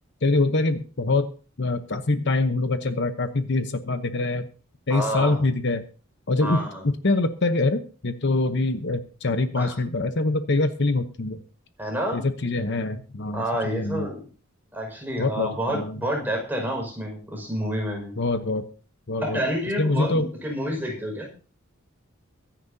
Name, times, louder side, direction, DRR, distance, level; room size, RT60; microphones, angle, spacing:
voice 1, 0.2-1.3 1.6-4.5 4.9-5.9 6.3-6.6 7.0-11.4 12.1-14.1 15.2-16.0 18.2-18.6 19.1-19.4 19.8-20.3, left 2 dB, 55° left, 8 dB, 1.0 m, -24 dB
voice 2, 4.9-5.4 6.4-6.8 9.6-9.8 11.8-12.2 13.3-14.3 14.7-18.1 19.2-21.3, equal, 10° right, 0 dB, 5.6 m, -29 dB
23.5 x 10.0 x 2.8 m, 0.37 s
head